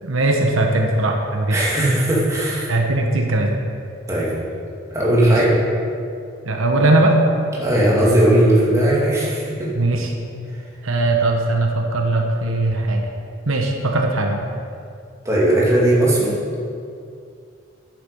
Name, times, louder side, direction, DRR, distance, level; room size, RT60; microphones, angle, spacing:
voice 1, 0.0-1.6 2.7-3.5 5.2-5.4 6.4-7.2 9.7-10.1 10.8-13.1 13.5-14.4, right 2 dB, 90° right, 2 dB, 1.2 m, -19 dB
voice 2, 1.5-2.7 4.1-4.3 4.9-5.5 7.6-9.7 15.2-16.3, right 1 dB, 15° right, -6 dB, 2.5 m, -17 dB
10.5 x 8.3 x 5.4 m, 2.4 s
head